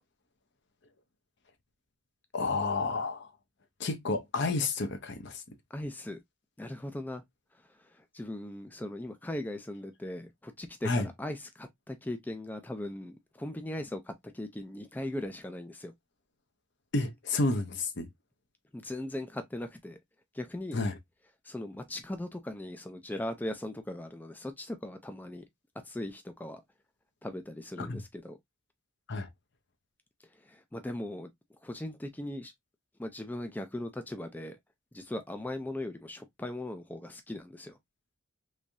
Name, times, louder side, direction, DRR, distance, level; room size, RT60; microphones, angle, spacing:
voice 1, 2.3-3.3 3.8-5.4 10.8-11.1 16.9-18.1 20.7-20.9 27.8-28.0 29.1-29.3, left 3 dB, 60° left, 0.7 m, -30 dB
voice 2, 5.7-6.2 6.6-7.2 7.7-15.9 18.7-20.0 20.3-20.8 21.4-25.4 25.8-26.6 27.2-28.4 30.3-31.3 31.6-32.5 33.0-34.6 34.9-37.8, left 1 dB, 10° left, 0.4 m, -39 dB
3.4 x 3.2 x 2.5 m
head